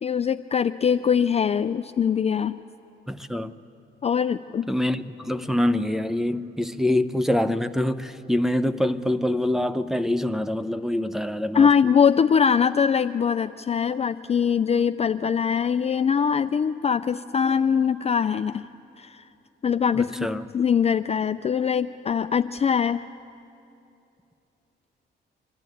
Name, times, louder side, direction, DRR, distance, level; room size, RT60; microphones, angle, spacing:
voice 1, 0.0-2.6 4.0-4.7 11.5-18.7 19.0-19.2 19.6-20.3 20.5-23.0, left 7 dB, 30° left, 0.4 m, -22 dB
voice 2, 3.1-3.5 4.7-11.7 19.9-20.4, left 1 dB, ahead, 0.7 m, -25 dB
25.0 x 12.0 x 9.2 m
cardioid pair, 90°, 20 cm